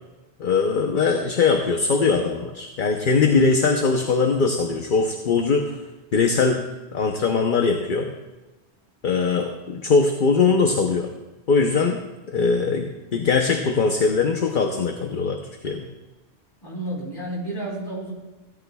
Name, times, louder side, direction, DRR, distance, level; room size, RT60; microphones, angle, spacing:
voice 1, 0.4-5.8 6.1-6.6 6.9-8.1 9.0-11.1 11.5-12.0 12.3-15.4 15.6-15.9, left 4 dB, 50° left, 2 dB, 0.9 m, -21 dB
voice 2, 16.6-18.1, right 1 dB, 20° left, -5 dB, 3.3 m, -31 dB
17.0 x 11.0 x 2.3 m, 1.1 s
omnidirectional pair, 1.2 m